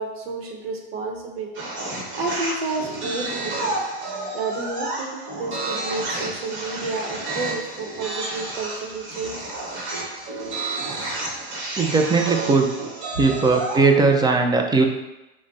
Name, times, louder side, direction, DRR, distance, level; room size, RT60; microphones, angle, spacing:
voice 1, 0.0-1.7 2.2-3.7 4.3-9.5 11.0-11.2, right 3 dB, 90° right, 2 dB, 0.8 m, -31 dB
sound 1, 1.5-13.9, right 2 dB, 40° right, 1.3 m, -30 dB
voice 2, 11.8-12.7 13.2-14.9, right 4 dB, 15° right, 4 dB, 0.4 m, -18 dB
5.1 x 2.2 x 3.9 m, 1.0 s
hypercardioid pair, 105°, 30 cm